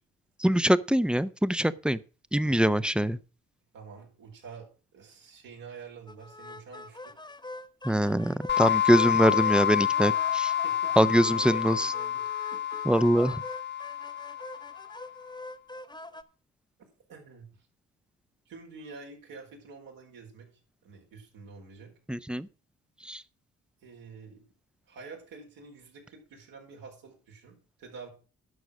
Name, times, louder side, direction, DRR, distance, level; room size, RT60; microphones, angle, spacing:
voice 1, 0.4-2.0 2.3-3.2 7.8-10.5 11.0-11.9 12.9-13.3 22.1-22.5 23.0-23.2, equal, 5° right, 0.7 m, -23 dB
voice 2, 3.7-7.1 10.6-12.3 12.5-12.8 17.1-17.5 18.5-20.5 20.8-21.9 23.8-24.5 24.9-28.1, right 4 dB, 80° right, 4.4 m, -48 dB
sound 1, 6.1-16.2, left 2 dB, 15° left, 1.4 m, -44 dB
sound 2, 8.5-15.0, left 10 dB, 30° left, 1.1 m, -29 dB
11.5 x 6.3 x 6.2 m
hypercardioid pair, 50°, 33 cm